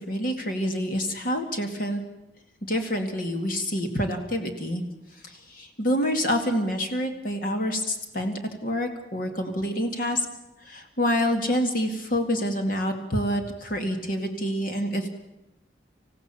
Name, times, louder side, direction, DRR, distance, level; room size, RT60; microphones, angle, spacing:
voice 1, 0.1-2.0 2.7-4.8 5.2-8.3 8.6-10.3 10.6-15.1, equal, 50° left, 4 dB, 2.2 m, -27 dB
26.5 x 15.5 x 7.0 m, 0.97 s
head